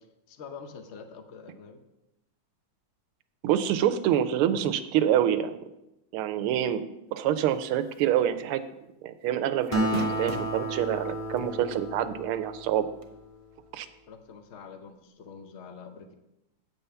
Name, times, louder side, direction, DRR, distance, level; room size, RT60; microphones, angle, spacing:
voice 1, 0.3-1.8 14.1-16.1, left 5 dB, 75° left, 7 dB, 0.6 m, -45 dB
voice 2, 3.4-5.6 6.1-6.8 7.1-8.6 9.0-12.9 13.7-13.9, right 10 dB, 85° right, 11 dB, 1.5 m, -26 dB
sound 1, 8.0-8.2 8.5-8.6 9.7-10.6 11.4-11.5 13.0-13.1, right 4 dB, 50° right, 1.0 m, -33 dB
Acoustic guitar, 9.7-13.4, right 1 dB, 10° left, 1.4 m, -32 dB
8.2 x 5.6 x 6.8 m, 0.90 s
omnidirectional pair, 2.4 m